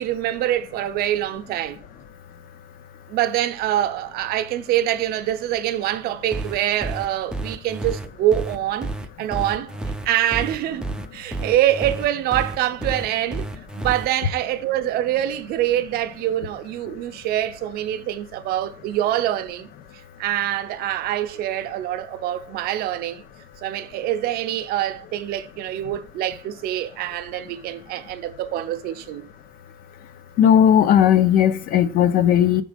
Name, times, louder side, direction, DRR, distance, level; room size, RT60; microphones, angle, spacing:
voice 1, 0.0-1.8 3.1-8.9 9.2-9.7 10.0-10.8 11.1-13.5 13.8-19.7 20.2-23.2 23.6-29.3, right 12 dB, 65° right, 0.6 m, -25 dB
sound 1, 6.3-14.1, right 2 dB, 5° right, 0.3 m, -30 dB
voice 2, 30.4-32.6, left 9 dB, 60° left, 0.6 m, -16 dB
6.3 x 3.8 x 5.1 m
cardioid pair, 175°, 17 cm